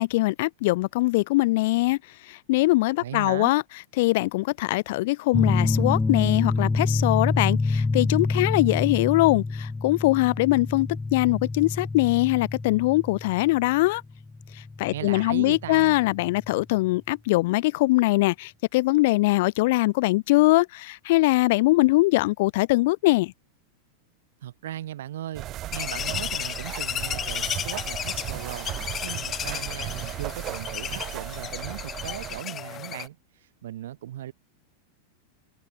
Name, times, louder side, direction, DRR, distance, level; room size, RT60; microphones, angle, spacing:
voice 1, 0.0-2.0 2.5-3.6 4.0-14.0 14.8-23.3, left 20 dB, 50° left, 0.5 m, -22 dB
voice 2, 3.0-3.5 14.9-16.0 24.4-28.8 29.0-33.2 33.6-34.3, right 12 dB, 60° right, 2.5 m, -37 dB
sound 1, 5.3-16.5, left 3 dB, 10° left, 1.8 m, -27 dB
sound 2, 25.3-32.4, right 14 dB, 35° right, 1.9 m, -36 dB
sound 3, 25.7-33.1, left 10 dB, 25° left, 2.3 m, -33 dB
figure-of-eight pair, 90°, 0 cm